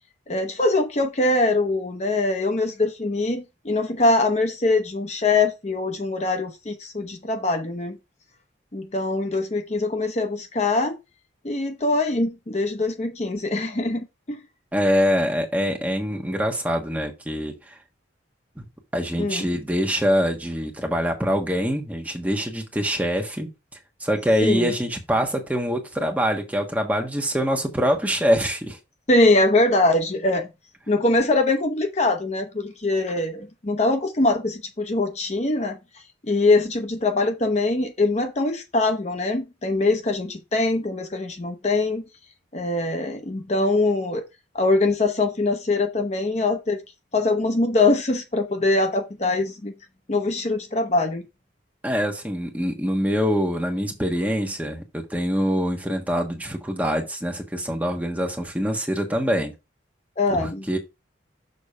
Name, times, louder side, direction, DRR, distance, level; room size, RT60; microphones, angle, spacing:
voice 1, 0.3-8.0 8.7-10.9 11.4-14.4 19.2-19.5 24.4-24.7 29.1-30.5 30.9-35.8 36.3-42.0 42.5-44.2 44.5-46.8 47.1-49.7 50.1-51.2 60.2-60.6, left 2 dB, 35° left, 0.8 m, -23 dB
voice 2, 14.7-17.7 18.6-18.7 18.9-23.5 24.0-28.8 51.8-59.5 60.3-60.8, equal, 10° right, 1.4 m, -24 dB
6.7 x 4.1 x 5.4 m
head